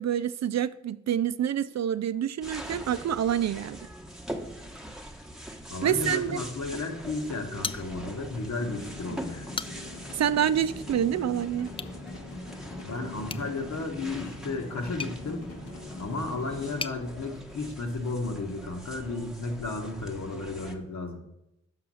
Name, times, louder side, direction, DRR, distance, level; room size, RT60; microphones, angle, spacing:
voice 1, 0.0-3.8 5.8-6.3 10.1-11.7, right 9 dB, 65° right, 0.4 m, -27 dB
sound 1, 2.4-20.7, right 1 dB, ahead, 1.0 m, -43 dB
voice 2, 5.7-9.5 12.8-15.5 16.0-21.2, left 3 dB, 70° left, 1.3 m, -33 dB
sound 2, 7.6-8.4 8.7-8.8 9.3-10.1 11.7-12.0 13.2-17.0, left 4 dB, 20° left, 0.3 m, -40 dB
sound 3, 8.6-16.7, left 2 dB, 90° left, 1.4 m, -42 dB
6.0 x 4.9 x 6.1 m
cardioid pair, 45°, 29 cm